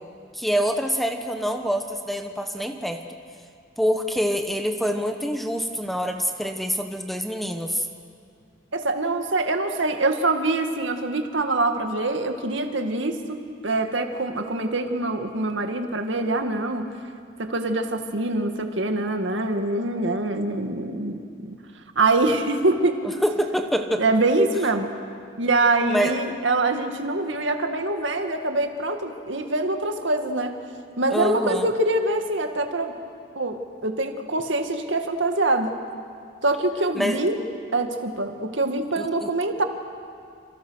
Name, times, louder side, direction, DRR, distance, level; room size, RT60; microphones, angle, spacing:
voice 1, 0.3-3.0 3.8-7.9 23.2-24.0 25.9-26.1 31.1-31.7 36.9-37.2 39.0-39.3, equal, ahead, 5 dB, 1.2 m, -26 dB
voice 2, 8.7-13.4 13.6-16.9 17.4-21.6 22.0-23.0 24.0-24.9 25.4-30.6 31.0-32.9 33.4-35.7 36.4-37.4 37.7-39.6, right 2 dB, 70° right, 6 dB, 2.0 m, -24 dB
29.0 x 27.0 x 6.5 m, 2.4 s
head